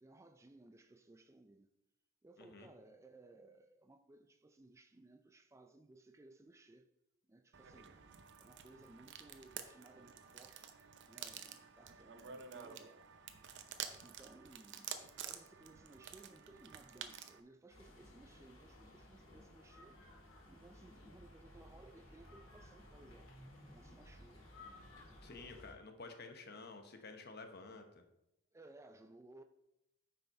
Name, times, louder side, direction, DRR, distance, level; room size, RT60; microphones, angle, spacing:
voice 1, 0.0-1.7 2.2-6.9 7.3-8.0 8.4-13.2 14.0-23.3 23.7-25.5 28.5-29.4, right 2 dB, 15° right, 0.4 m, -61 dB
voice 2, 2.4-2.7 25.2-28.0, left 3 dB, 55° left, 1.1 m, -51 dB
sound 1, 7.5-17.4, right 8 dB, 60° right, 0.7 m, -50 dB
sound 2, 17.7-25.7, left 1 dB, 90° left, 2.5 m, -57 dB
9.2 x 5.7 x 4.3 m
head